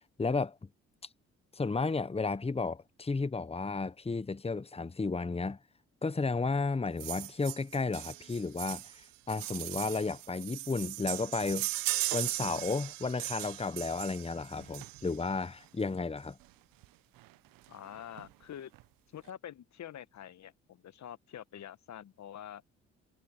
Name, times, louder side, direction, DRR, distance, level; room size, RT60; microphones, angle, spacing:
voice 1, 0.2-0.7 1.5-5.6 6.0-8.9 9.3-11.7 12.1-16.4, left 4 dB, 15° left, 1.2 m, -33 dB
sound 1, 7.0-15.3 16.4-16.5 16.8-16.9 17.2-17.3 17.7-18.3 18.7-18.8, right 18 dB, 70° right, 1.3 m, -38 dB
voice 2, 17.7-18.7 19.1-22.6, left 10 dB, 50° left, 1.5 m, -46 dB
hypercardioid pair, 45°, 35 cm